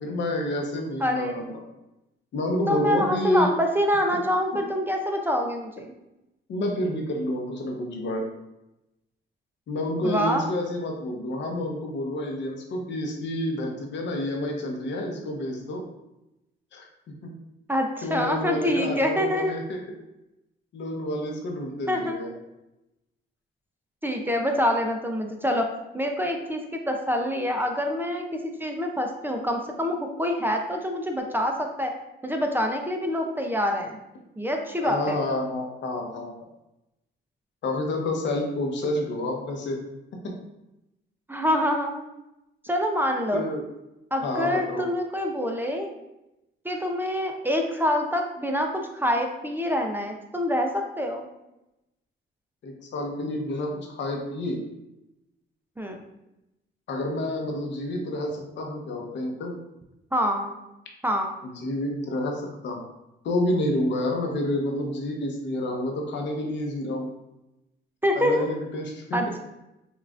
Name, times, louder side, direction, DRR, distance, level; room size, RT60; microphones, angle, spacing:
voice 1, 0.0-1.5 2.3-3.5 6.5-8.2 9.7-15.8 16.7-17.3 18.0-19.8 20.7-22.3 34.8-36.4 37.6-39.8 40.2-40.3 43.3-43.6 44.2-44.9 52.6-54.6 56.9-59.5 61.6-62.8 63.2-67.1 68.1-69.2, left 1 dB, 65° left, 1 dB, 0.8 m, -29 dB
voice 2, 1.0-1.4 2.7-5.9 10.0-10.5 17.7-19.6 21.9-22.2 24.0-25.7 25.9-31.9 32.2-34.0 34.4-35.2 41.3-42.0 42.6-43.4 44.1-45.9 46.6-48.7 48.9-51.3 55.8-56.0 60.1-60.5 61.0-61.3 68.0-68.4 69.1-69.4, equal, 10° right, 2 dB, 0.4 m, -26 dB
5.3 x 2.4 x 2.4 m, 0.92 s
cardioid pair, 90°, 20 cm